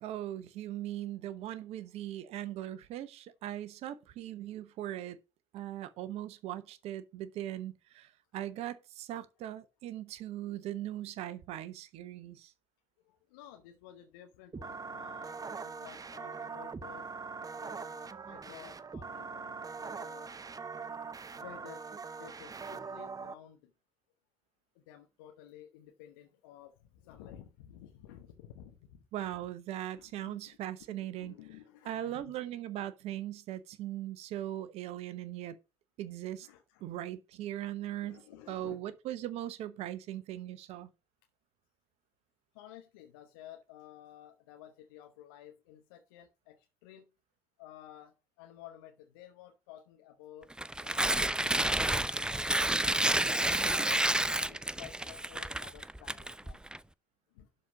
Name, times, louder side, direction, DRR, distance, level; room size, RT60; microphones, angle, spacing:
voice 1, 0.0-5.2 5.5-8.1 8.3-12.5 29.1-31.3 31.9-35.5 36.0-36.5 36.8-38.2 38.5-40.9, right 12 dB, 65° right, 0.9 m, -39 dB
voice 2, 13.1-17.1 17.6-20.3 21.3-21.8 22.2-23.7 24.7-29.0 29.9-30.6 30.9-32.2 36.4-36.9 38.0-38.8 42.5-47.1 47.6-50.5 50.8-52.3 52.8-56.6 57.3-57.5, left 11 dB, 75° left, 0.9 m, -53 dB
sound 1, 14.5-23.3, right 5 dB, 30° right, 0.9 m, -42 dB
Tearing, 50.5-56.8, right 1 dB, 5° right, 0.6 m, -30 dB
11.5 x 4.1 x 5.8 m
figure-of-eight pair, 45°, 12 cm